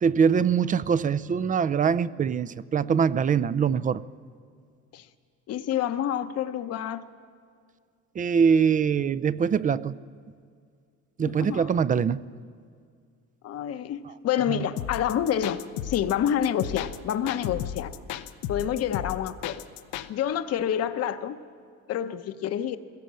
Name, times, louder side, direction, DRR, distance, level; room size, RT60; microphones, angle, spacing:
voice 1, 0.0-4.0 8.2-10.0 11.2-12.2 14.5-14.6, right 6 dB, 25° right, 0.5 m, -23 dB
voice 2, 5.5-7.0 11.2-11.7 13.4-17.9 18.5-19.6 20.1-21.4 21.9-22.8, left 10 dB, 55° left, 0.9 m, -28 dB
sound 1, 14.8-20.1, left 11 dB, 90° left, 0.9 m, -35 dB
21.0 x 16.5 x 7.6 m
cardioid pair, 110°, 30 cm